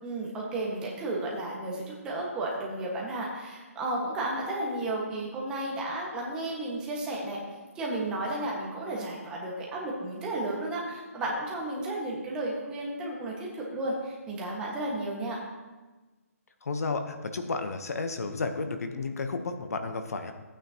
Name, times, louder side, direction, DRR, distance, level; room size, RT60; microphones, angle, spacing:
voice 1, 0.0-7.4 7.7-15.4, right 1 dB, 10° right, -3 dB, 1.6 m, -33 dB
voice 2, 16.6-20.3, left 3 dB, 75° left, 7 dB, 1.1 m, -32 dB
15.5 x 8.9 x 3.0 m, 1.2 s
hypercardioid pair, 165°, 8 cm